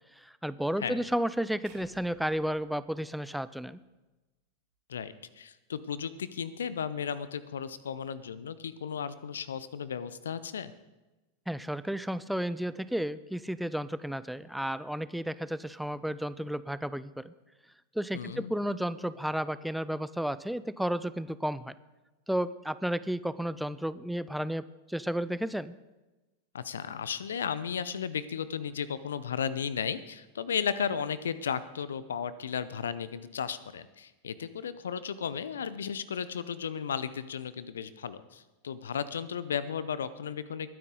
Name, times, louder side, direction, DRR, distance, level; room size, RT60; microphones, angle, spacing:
voice 1, 0.2-3.8 11.5-17.3 18.0-21.7 22.3-24.6 24.9-25.8, equal, ahead, 15 dB, 0.4 m, -32 dB
sound 1, 1.6-3.9, right 3 dB, 55° right, 2.4 m, -59 dB
voice 2, 4.9-10.7 18.1-18.5 26.5-40.7, left 7 dB, 70° left, 16 dB, 0.7 m, -35 dB
20.5 x 9.6 x 3.8 m, 1.1 s
figure-of-eight pair, 90°, 0 cm